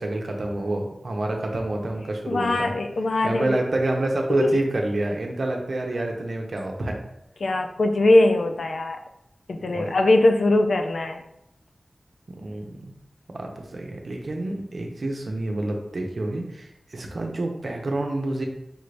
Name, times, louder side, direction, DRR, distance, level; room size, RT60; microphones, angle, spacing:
voice 1, 0.0-2.7 3.2-7.0 9.5-9.9 12.3-12.9 13.3-18.4, right 2 dB, 65° right, 1 dB, 0.7 m, -28 dB
voice 2, 2.3-3.6 4.4-4.5 7.4-9.0 9.5-11.2, left 2 dB, 85° left, 6 dB, 0.4 m, -21 dB
5.2 x 2.6 x 3.3 m, 0.81 s
wide cardioid pair, 90°, 0 cm